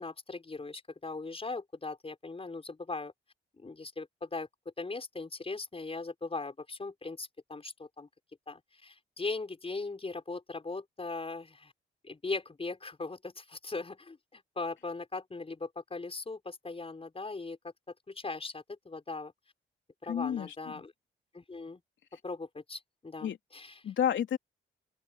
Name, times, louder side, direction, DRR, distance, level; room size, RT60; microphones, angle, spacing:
voice 1, 0.0-3.1 3.6-4.5 4.8-8.1 8.5-11.7 12.0-17.6 18.1-19.3 20.0-20.9 21.3-21.8 22.2-23.7, left 3 dB, 30° left, 5.5 m, -39 dB
voice 2, 20.1-20.8 23.2-23.4 23.8-24.4, left 9 dB, 70° left, 3.2 m, -31 dB
open air
cardioid pair, 75°, 20 cm